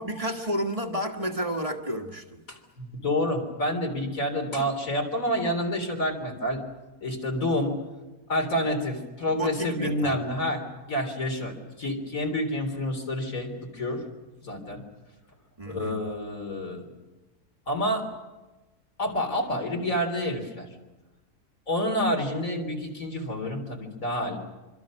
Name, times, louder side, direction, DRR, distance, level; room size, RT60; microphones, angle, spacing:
voice 1, 0.0-2.4 9.3-10.2 15.6-16.0, right 1 dB, 25° right, 4 dB, 1.6 m, -31 dB
voice 2, 2.5-6.6 7.0-7.8 8.3-14.0 14.4-14.8 15.7-16.9 17.7-18.1 19.0-20.7 21.7-24.4, left 1 dB, 60° left, 3 dB, 4.1 m, -28 dB
25.5 x 25.0 x 6.4 m, 1.1 s
omnidirectional pair, 1.6 m